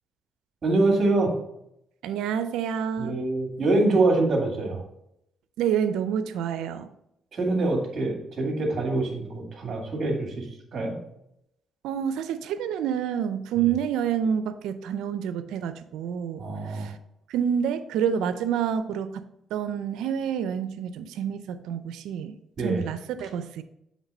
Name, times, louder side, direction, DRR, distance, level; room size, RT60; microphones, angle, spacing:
voice 1, 0.6-1.3 3.0-4.8 7.3-10.5 10.7-11.0 16.4-16.9 22.6-22.8, right 2 dB, 50° right, 1 dB, 2.1 m, -25 dB
voice 2, 2.0-3.2 5.6-6.9 11.8-16.9 17.3-23.6, right 8 dB, 90° right, 12 dB, 0.5 m, -28 dB
7.4 x 3.4 x 5.4 m, 0.80 s
cardioid pair, 90°, 0 cm